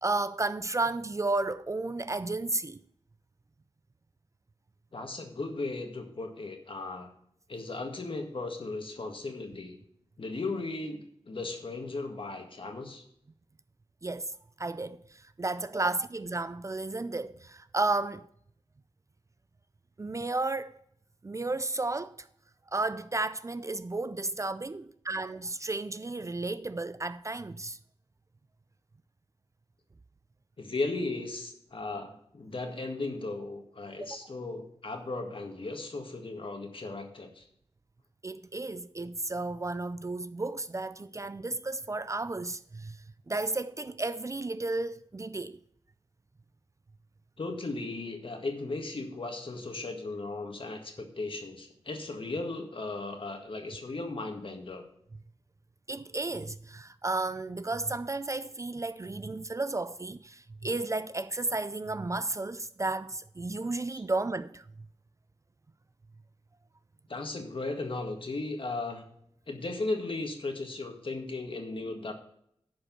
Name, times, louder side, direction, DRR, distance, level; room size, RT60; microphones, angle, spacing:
voice 1, 0.0-2.8 14.0-18.3 20.0-20.7 21.2-22.3 22.7-27.8 34.0-34.2 38.2-45.6 55.9-64.7, right 2 dB, 30° right, 0.4 m, -33 dB
voice 2, 4.9-7.1 7.5-9.8 10.2-13.0 30.6-37.5 47.4-54.8 63.9-64.0 67.1-69.0 69.5-72.1, left 3 dB, 55° left, 1.8 m, -36 dB
11.0 x 5.1 x 5.9 m
wide cardioid pair, 85°, 10 cm